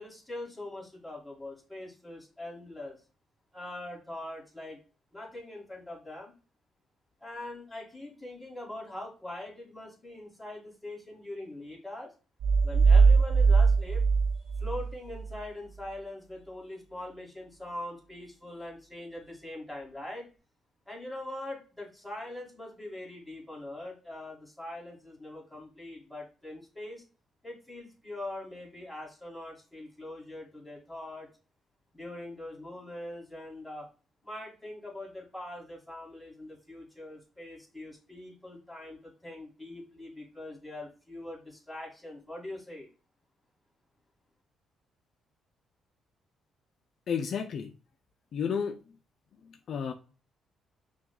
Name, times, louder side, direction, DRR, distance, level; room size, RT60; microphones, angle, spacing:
voice 1, 0.0-3.0 3.5-4.8 5.1-6.3 7.2-12.1 12.6-14.0 14.3-20.3 20.9-27.0 27.4-31.3 31.9-33.9 34.2-42.9, left 1 dB, ahead, -3 dB, 2.1 m, -42 dB
sound 1, 12.4-15.3, right 4 dB, 70° right, 0.5 m, -21 dB
voice 2, 47.1-47.7 48.3-48.7 49.7-49.9, left 7 dB, 60° left, 7 dB, 0.4 m, -31 dB
5.8 x 2.4 x 2.3 m, 0.35 s
cardioid pair, 90°, 0 cm